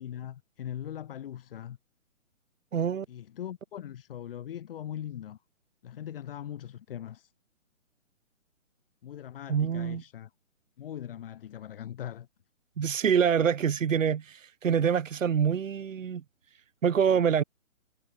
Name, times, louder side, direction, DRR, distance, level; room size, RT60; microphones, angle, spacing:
voice 1, 0.0-1.8 3.1-5.4 5.8-7.3 9.0-10.3 10.8-12.3 12.8-13.0, left 10 dB, 45° left, 4.3 m, -40 dB
voice 2, 2.7-3.0 9.5-10.0 12.8-16.2 16.8-17.4, right 7 dB, 75° right, 1.2 m, -25 dB
hypercardioid pair, 150°, 40 cm